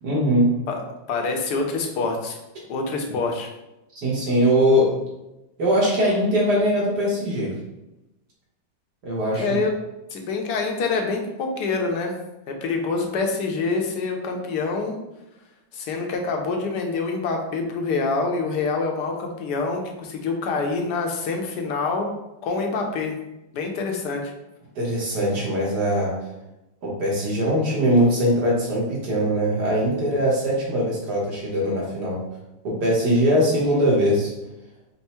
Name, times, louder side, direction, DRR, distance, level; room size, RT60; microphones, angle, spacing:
voice 1, 0.0-0.5 3.9-4.9 5.6-7.5 9.0-9.4 24.7-26.1 26.8-32.2 32.6-34.3, equal, 65° right, -5 dB, 1.6 m, -21 dB
voice 2, 1.1-2.4 2.7-3.5 9.3-9.7 10.1-12.2 12.5-15.0 15.7-22.1 22.4-23.1 23.5-24.3, left 4 dB, 70° left, 2 dB, 1.2 m, -26 dB
4.4 x 2.0 x 4.2 m, 0.94 s
omnidirectional pair, 1.9 m